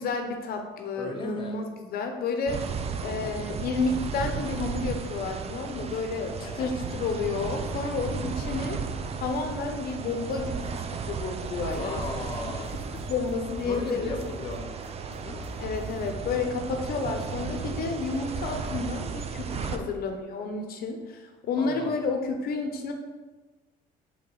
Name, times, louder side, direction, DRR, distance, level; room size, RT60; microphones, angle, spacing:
voice 1, 0.0-2.7 3.0-8.8 9.2-12.0 12.4-12.5 13.1-14.2 15.6-22.9, left 4 dB, 65° left, 4 dB, 0.9 m, -31 dB
voice 2, 1.0-1.6 3.0-3.3 6.4-6.8 8.6-8.9 11.8-12.8 13.6-15.4 19.6-19.9 21.6-22.1, left 3 dB, 30° left, 1 dB, 0.7 m, -37 dB
sound 1, 2.5-19.8, right 6 dB, 35° right, 0.5 m, -35 dB
sound 2, 11.4-16.7, equal, 10° left, 1.4 m, -43 dB
4.9 x 3.7 x 5.4 m, 1.3 s
cardioid pair, 110°, 17 cm